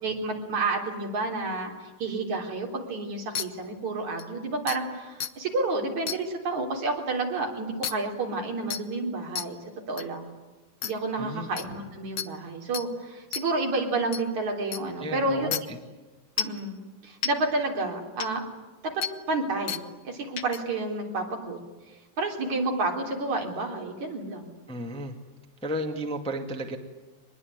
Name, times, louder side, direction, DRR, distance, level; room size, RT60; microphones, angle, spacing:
voice 1, 0.0-9.6 9.9-10.3 10.8-15.5 16.4-16.8 17.0-18.5 18.8-21.6 22.2-24.5, right 2 dB, 65° right, 2 dB, 5.0 m, -30 dB
sound 1, 3.3-3.4 4.2-4.3 4.7-4.8 5.2-5.3 6.1-6.2 7.8-7.9 8.7-8.8 9.3-9.4 10.0-10.1 10.8-10.9 11.6-11.7 12.2-12.3 12.7-12.8 13.3-13.4 14.1-14.2 14.7-14.8 15.5-15.6 16.4-16.6 17.2-17.3 18.2-18.3 19.0-19.1 19.7-19.8 20.4-20.6, left 8 dB, 85° left, 1.0 m, -30 dB
voice 2, 15.0-15.8 24.7-25.2 25.6-26.8, equal, ahead, 4 dB, 1.5 m, -33 dB
24.0 x 21.0 x 9.6 m, 1.2 s
omnidirectional pair, 3.5 m